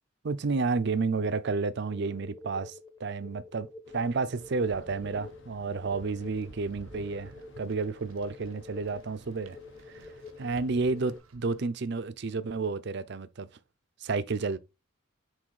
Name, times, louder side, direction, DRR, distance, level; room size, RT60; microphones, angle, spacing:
voice 1, 0.2-3.7 3.9-9.6 9.9-10.1 10.4-13.5 14.0-14.6, right 4 dB, 55° right, 0.5 m, -31 dB
sound 1, 1.2-11.2, left 4 dB, 20° left, 1.0 m, -49 dB
sound 2, 3.8-11.2, left 1 dB, 60° left, 1.0 m, -57 dB
sound 3, 4.4-11.6, right 3 dB, 80° right, 0.9 m, -53 dB
6.3 x 4.1 x 4.7 m
head